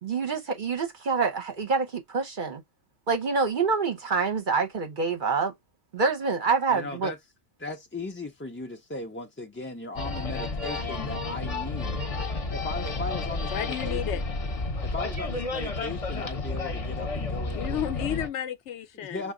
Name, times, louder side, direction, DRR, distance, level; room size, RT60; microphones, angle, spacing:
voice 1, 0.0-2.6 3.1-5.5 5.9-7.1, right 4 dB, 50° right, 0.8 m, -26 dB
voice 2, 6.7-7.2 7.6-12.0 12.5-14.2 14.9-17.9 18.9-19.3, left 2 dB, 20° left, 0.3 m, -37 dB
sound 1, 10.0-18.3, left 3 dB, 35° left, 0.7 m, -31 dB
voice 3, 13.5-14.2 17.5-19.3, left 10 dB, 70° left, 0.9 m, -32 dB
5.9 x 2.3 x 3.6 m
omnidirectional pair, 1.3 m